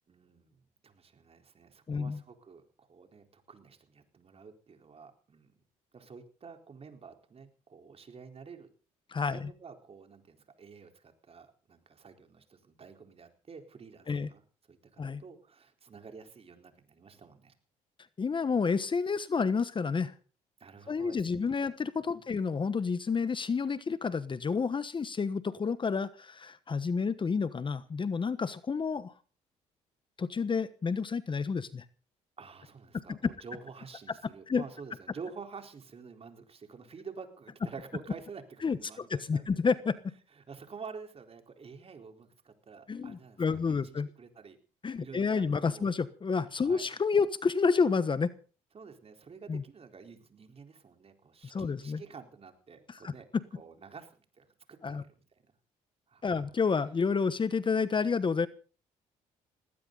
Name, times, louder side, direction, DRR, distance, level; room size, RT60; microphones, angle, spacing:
voice 1, 0.1-5.5 5.9-8.7 9.3-14.4 14.7-17.5 20.6-21.7 22.2-22.3 32.4-39.6 40.3-44.6 45.0-45.9 46.6-46.8 48.7-53.3 53.5-55.5 56.1-56.4, right 5 dB, 40° right, 5 dB, 4.2 m, -49 dB
voice 2, 1.9-2.2 9.1-9.5 14.1-14.3 15.0-15.2 18.2-20.1 20.9-29.1 30.2-31.8 32.9-33.2 34.5-34.6 38.6-40.0 42.9-44.1 44.8-48.3 49.5-49.6 51.5-52.0 53.0-53.4 54.8-55.0 56.2-58.5, left 5 dB, 35° left, 15 dB, 1.2 m, -30 dB
19.5 x 17.5 x 4.0 m, 0.40 s
supercardioid pair, 75°, 15 cm